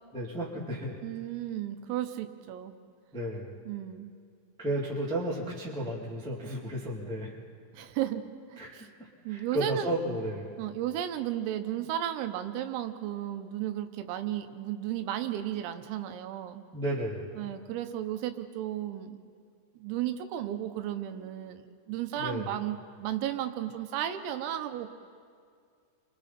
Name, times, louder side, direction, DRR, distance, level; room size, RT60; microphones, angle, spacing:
voice 1, 0.1-1.0 3.1-3.6 4.6-7.3 8.6-8.7 9.0-10.5 16.7-17.3 22.2-22.5, right 1 dB, 5° left, -4 dB, 0.7 m, -33 dB
voice 2, 1.0-2.8 3.7-4.1 7.7-8.2 8.5-8.9 9.3-10.0 10.6-16.6 17.4-19.2 19.8-24.9, right 12 dB, 90° right, 7 dB, 3.7 m, -34 dB
29.5 x 25.0 x 4.3 m, 2.2 s
omnidirectional pair, 5.9 m